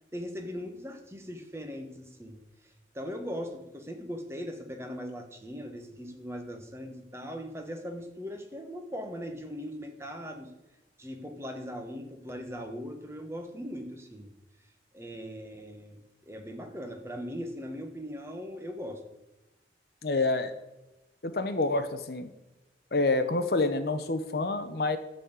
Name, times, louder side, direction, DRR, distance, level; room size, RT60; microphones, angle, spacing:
voice 1, 0.1-10.5 11.0-14.3 14.9-19.0, equal, 15° right, 4 dB, 1.1 m, -40 dB
voice 2, 20.0-20.5 21.2-22.3 22.9-25.0, left 2 dB, 60° left, 10 dB, 0.8 m, -27 dB
12.5 x 4.2 x 8.0 m, 0.99 s
head